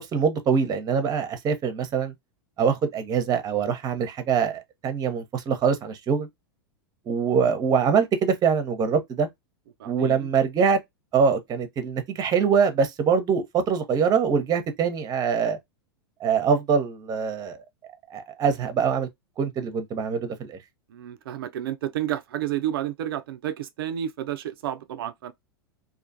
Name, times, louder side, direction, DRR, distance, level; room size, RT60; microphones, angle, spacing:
voice 1, 0.0-2.1 2.6-6.3 7.1-9.3 9.8-10.8 11.1-15.6 16.2-17.6 18.1-19.1 19.4-20.6, right 6 dB, 30° right, 0.8 m, -24 dB
voice 2, 9.8-10.3 20.9-25.3, right 11 dB, 70° right, 0.4 m, -31 dB
2.5 x 2.3 x 2.5 m
hypercardioid pair, 95°, 13 cm